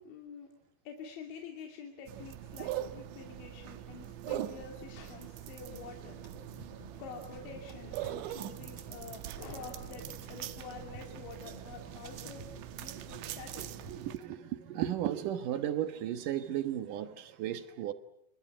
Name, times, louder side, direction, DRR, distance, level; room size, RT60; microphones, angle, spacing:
voice 1, 0.1-0.5 0.8-6.2 7.0-12.5 12.8-13.7, left 6 dB, 90° left, 2 dB, 5.1 m, -47 dB
sound 1, 2.1-14.2, right 12 dB, 85° right, 3.5 m, -42 dB
sound 2, 5.6-14.2, right 2 dB, 35° right, 4.7 m, -53 dB
voice 2, 13.6-17.9, right 11 dB, 65° right, 11 dB, 2.3 m, -35 dB
29.0 x 27.0 x 6.1 m, 0.74 s
omnidirectional pair, 5.1 m